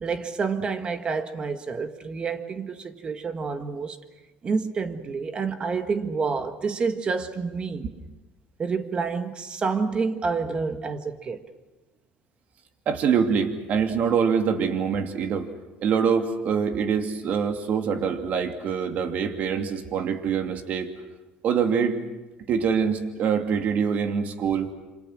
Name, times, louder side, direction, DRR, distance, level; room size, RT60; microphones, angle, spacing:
voice 1, 0.0-4.0 4.4-7.8 8.6-11.4, right 5 dB, 30° right, 1.7 m, -28 dB
voice 2, 12.9-15.5 15.8-20.9 21.4-22.0 22.5-24.7, right 6 dB, 55° right, 2.7 m, -24 dB
27.5 x 26.5 x 6.3 m
cardioid pair, 120°, 3 cm